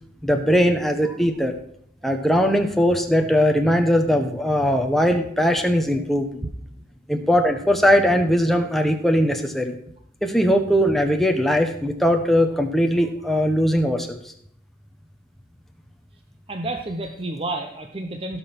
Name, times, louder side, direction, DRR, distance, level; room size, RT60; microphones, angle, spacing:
voice 1, 0.2-1.6 2.0-6.4 7.1-9.8 10.2-14.2, equal, ahead, 4 dB, 1.1 m, -20 dB
voice 2, 16.5-18.4, right 2 dB, 30° right, 4 dB, 0.9 m, -30 dB
16.5 x 5.6 x 6.0 m, 0.67 s
head